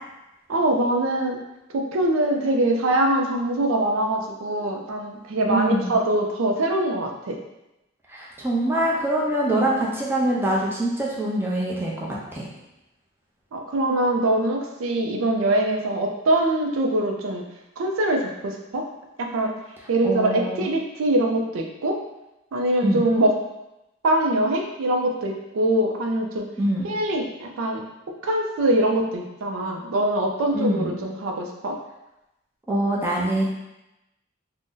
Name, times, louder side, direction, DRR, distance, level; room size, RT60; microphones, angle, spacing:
voice 1, 0.5-1.4 1.7-7.4 9.5-9.7 13.5-17.4 17.8-18.9 19.2-19.5 19.9-22.0 22.5-23.4 24.0-26.5 26.8-27.8 28.2-31.8, right 1 dB, 85° right, 2 dB, 0.4 m, -23 dB
voice 2, 5.5-5.9 8.1-12.5 20.0-20.7 22.8-23.1 26.6-26.9 30.5-31.0 32.7-33.4, right 1 dB, 10° right, -5 dB, 0.5 m, -24 dB
2.6 x 2.1 x 3.7 m, 0.92 s
head